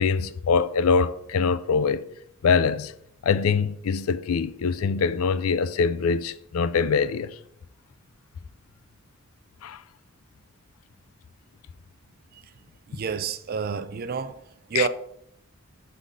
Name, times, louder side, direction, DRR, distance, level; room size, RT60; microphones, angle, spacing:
voice 1, 0.0-2.1 2.4-2.9 3.2-7.3 9.6-9.8 14.7-14.9, left 5 dB, 90° left, 0.4 m, -23 dB
voice 2, 12.9-14.4 14.7-14.9, right 6 dB, 45° right, 0.4 m, -28 dB
6.3 x 4.0 x 5.3 m
head